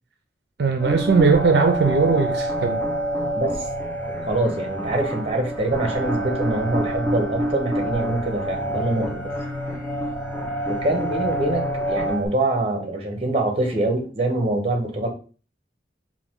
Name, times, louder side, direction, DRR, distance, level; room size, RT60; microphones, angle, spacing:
voice 1, 0.6-2.8, right 4 dB, 70° right, 0.4 m, -19 dB
sound 1, 0.8-12.3, right 1 dB, 10° left, 0.6 m, -27 dB
voice 2, 3.3-3.6 4.3-9.3 10.6-15.1, right 2 dB, 35° right, 0.8 m, -24 dB
3.8 x 2.5 x 3.6 m
head